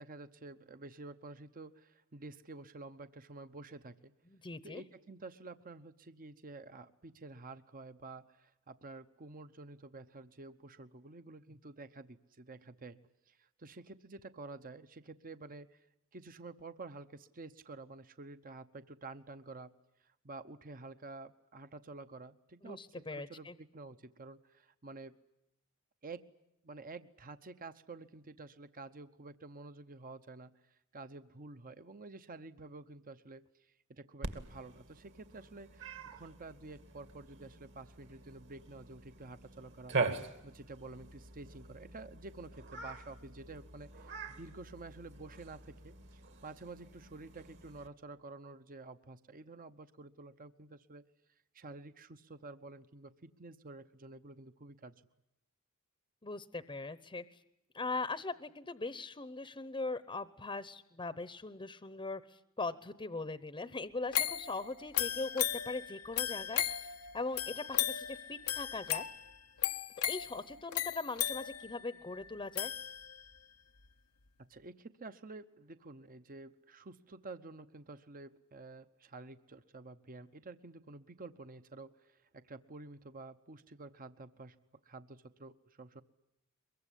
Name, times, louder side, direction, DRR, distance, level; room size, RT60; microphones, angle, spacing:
voice 1, 0.0-4.1 4.6-13.0 13.3-15.9 16.1-19.7 20.0-25.2 26.0-26.3 26.6-51.0 51.5-55.0 74.5-84.6 84.8-86.0, right 3 dB, 40° right, 10 dB, 0.9 m, -50 dB
voice 2, 4.3-4.8 22.6-23.5 56.2-57.4 57.7-66.8 67.1-69.1 70.1-72.7, left 3 dB, 25° left, 14 dB, 0.9 m, -40 dB
Cat, 34.2-47.9, right 3 dB, 55° right, 2.4 m, -43 dB
sound 1, 64.1-73.4 73.8-73.9, left 11 dB, 90° left, 1.0 m, -37 dB
23.0 x 23.0 x 9.9 m, 0.85 s
head